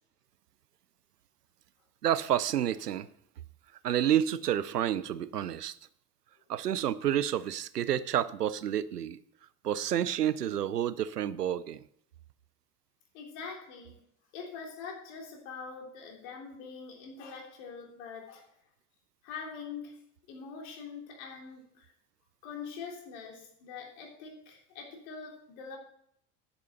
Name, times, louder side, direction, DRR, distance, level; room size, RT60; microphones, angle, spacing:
voice 1, 2.0-3.1 3.8-5.7 6.5-9.2 9.6-11.8, right 10 dB, 85° right, 0.6 m, -29 dB
voice 2, 13.1-14.0 14.3-18.5 19.2-20.0 20.3-21.9 22.4-25.8, left 5 dB, 55° left, 3.3 m, -44 dB
10.0 x 8.3 x 5.5 m
figure-of-eight pair, 70°, 46 cm